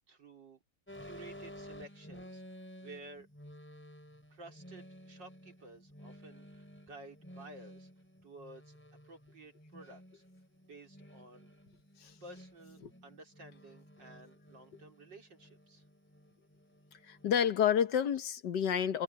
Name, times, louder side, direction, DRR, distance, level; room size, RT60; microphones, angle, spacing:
voice 1, 0.1-0.6 1.0-3.3 4.3-7.9 8.2-8.8 9.0-10.2 10.6-11.5 12.2-15.8, right 2 dB, 60° right, 4.7 m, -53 dB
sound 1, 0.9-17.4, equal, 5° left, 4.5 m, -53 dB
voice 2, 16.9-19.0, left 8 dB, 60° left, 1.6 m, -30 dB
omnidirectional pair, 2.3 m